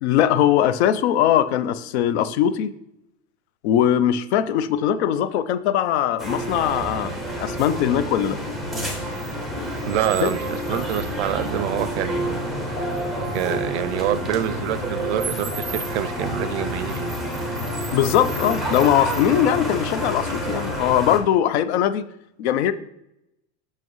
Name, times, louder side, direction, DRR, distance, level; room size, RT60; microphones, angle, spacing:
voice 1, 0.0-2.7 3.6-7.1 7.4-8.4 10.2-10.4 17.9-22.0 22.4-22.7, left 10 dB, 80° left, 14 dB, 0.6 m, -20 dB
sound 1, 6.2-21.2, equal, ahead, 0.4 m, -28 dB
voice 2, 9.9-12.5 13.3-17.2, right 11 dB, 80° right, 14 dB, 0.5 m, -26 dB
7.5 x 6.4 x 3.1 m, 0.83 s
supercardioid pair, 175°, 33 cm